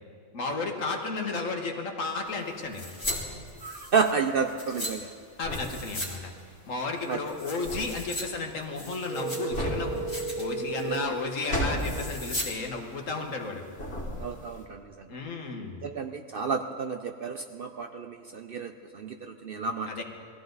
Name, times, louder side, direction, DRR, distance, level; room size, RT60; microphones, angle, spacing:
voice 1, 0.3-2.9 5.4-6.3 6.7-13.6 15.1-15.8 19.9-20.0, left 3 dB, 70° left, 2 dB, 1.8 m, -33 dB
sound 1, 2.3-13.5 13.7-14.6, equal, 50° left, 2.5 m, -36 dB
sound 2, 2.7-3.2 3.5-4.9 5.5-6.1 6.4-6.5 7.0-8.2 8.6-9.6 9.9-10.4 10.7-11.1 11.7-12.5 12.8-12.9, left 1 dB, 30° left, 2.8 m, -37 dB
voice 2, 3.6-5.1 7.1-7.2 10.9-11.1 14.2-14.8 15.8-20.0, right 5 dB, 60° right, 7 dB, 0.6 m, -31 dB
sound 3, 9.1-11.1, right 4 dB, 30° right, 2.6 m, -34 dB
21.0 x 14.5 x 4.0 m, 2.2 s
omnidirectional pair, 1.4 m